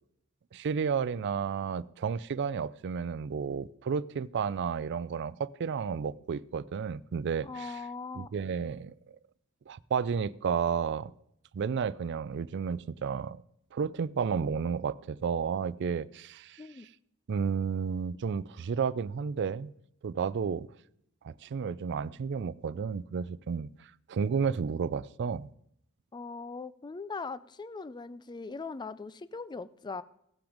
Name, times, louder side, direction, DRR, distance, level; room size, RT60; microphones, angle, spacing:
voice 1, 0.5-7.7 8.2-8.9 9.7-11.1 11.5-13.4 13.7-16.6 17.3-19.7 20.0-20.7 21.2-23.7 24.1-25.5, right 6 dB, 55° right, 0.4 m, -32 dB
voice 2, 7.4-8.3 16.6-16.9 26.1-30.0, left 4 dB, 20° left, 0.4 m, -40 dB
17.0 x 6.0 x 5.0 m
head